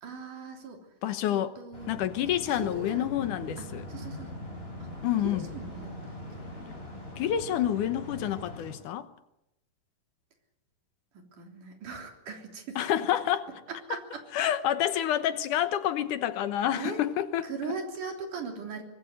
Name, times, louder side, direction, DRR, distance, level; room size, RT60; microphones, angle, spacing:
voice 1, 0.0-0.9 1.3-1.9 2.5-3.1 3.6-4.3 4.8-4.9 5.2-6.4 11.3-12.8 13.7-14.2 16.7-17.0 17.4-18.8, right 5 dB, 70° right, 4.9 m, -39 dB
voice 2, 1.0-1.5 1.9-3.9 5.0-5.5 7.2-9.1 12.8-13.4 13.9-14.0 14.3-17.8, left 11 dB, 75° left, 2.5 m, -28 dB
sound 1, 1.7-8.7, left 1 dB, 15° left, 5.8 m, -41 dB
25.0 x 20.0 x 8.0 m
omnidirectional pair, 3.8 m